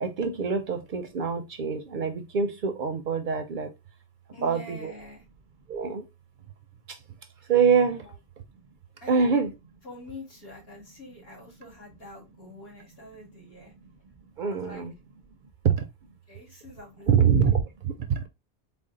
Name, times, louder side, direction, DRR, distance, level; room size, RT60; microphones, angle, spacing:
voice 1, 0.0-3.7 4.4-4.9 5.7-6.0 7.5-8.0 9.1-9.5 14.4-14.9 15.6-15.7 17.1-17.6 18.1-18.2, right 6 dB, 60° right, 0.6 m, -24 dB
voice 2, 4.3-5.2 8.0-8.1 9.0-9.3 9.8-13.7 14.4-14.8 16.3-17.2, left 1 dB, 70° left, 2.2 m, -45 dB
4.2 x 2.0 x 3.7 m
omnidirectional pair, 1.0 m